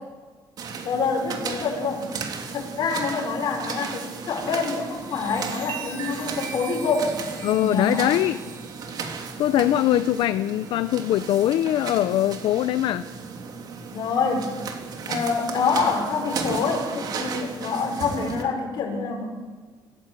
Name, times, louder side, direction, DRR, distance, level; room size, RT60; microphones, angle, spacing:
sound 1, 0.6-18.4, right 5 dB, 50° right, 3.2 m, -35 dB
voice 1, 0.8-2.0 2.5-7.2 7.5-8.1 13.9-14.5 15.1-19.3, left 4 dB, 55° left, 2 dB, 5.9 m, -26 dB
Chime, 4.9-10.8 11.4-11.7, right 6 dB, 70° right, 7.8 m, -41 dB
voice 2, 7.4-8.4 9.4-13.1, left 13 dB, 75° left, 13 dB, 0.7 m, -22 dB
25.5 x 15.5 x 8.2 m, 1.4 s
cardioid pair, 150°, 8 cm